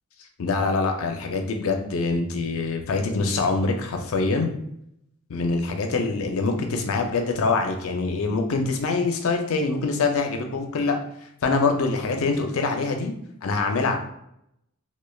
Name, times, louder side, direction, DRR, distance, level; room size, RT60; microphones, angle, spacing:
voice 1, 0.4-4.5 5.3-11.0 11.4-13.1 13.4-14.0, left 3 dB, 70° left, 4 dB, 0.4 m, -24 dB
3.1 x 2.1 x 2.2 m, 0.76 s
head